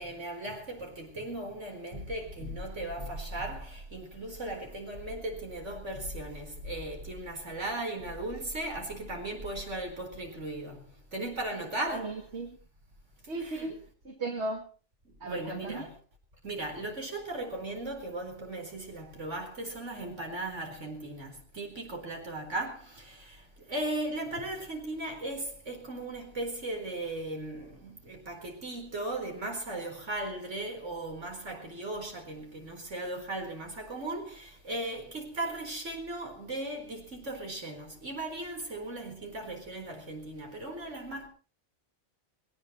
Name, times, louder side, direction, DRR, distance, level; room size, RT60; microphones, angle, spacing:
voice 1, 0.0-12.2 13.4-13.7 15.0-15.9 16.4-41.3, right 2 dB, 85° right, 4.8 m, -37 dB
voice 2, 11.9-12.6 13.3-13.8 14.0-14.7 15.2-15.9, right 2 dB, 65° right, 2.3 m, -36 dB
21.5 x 18.5 x 3.2 m
omnidirectional pair, 1.2 m